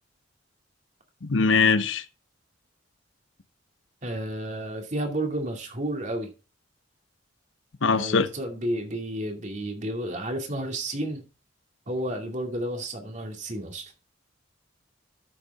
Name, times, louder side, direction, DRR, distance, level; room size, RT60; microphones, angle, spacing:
voice 1, 1.2-2.0 7.8-8.3, left 4 dB, 85° left, 0.9 m, -21 dB
voice 2, 4.0-6.3 7.9-11.2 11.9-13.9, right 1 dB, 40° right, 2.5 m, -31 dB
12.5 x 7.0 x 3.6 m
head